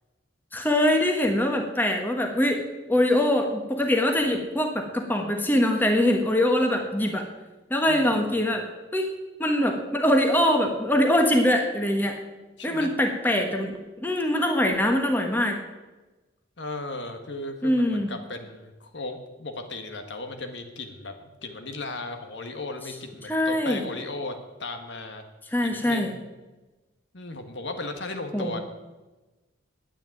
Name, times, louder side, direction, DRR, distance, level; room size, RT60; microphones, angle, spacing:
voice 1, 0.5-2.6 2.9-7.2 7.7-8.6 8.9-9.1 9.4-12.1 12.6-15.5 17.6-18.1 23.3-23.8 25.5-26.1 28.3-28.6, left 1 dB, 10° left, 3 dB, 1.3 m, -23 dB
voice 2, 12.6-12.9 16.6-25.2 25.6-26.2 27.1-28.6, left 2 dB, 65° left, 6 dB, 1.5 m, -36 dB
10.5 x 9.1 x 9.2 m, 1.2 s
head